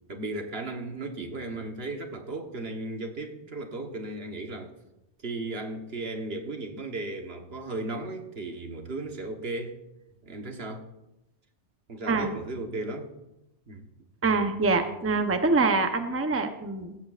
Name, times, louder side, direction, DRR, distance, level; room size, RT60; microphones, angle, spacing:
voice 1, 0.1-4.7 5.2-9.8 10.2-10.8 11.9-13.1 13.7-13.9, right 2 dB, 65° right, 4 dB, 1.5 m, -35 dB
voice 2, 14.2-17.0, right 3 dB, 15° right, 6 dB, 0.7 m, -25 dB
16.0 x 15.0 x 2.5 m, 0.94 s
omnidirectional pair, 1.1 m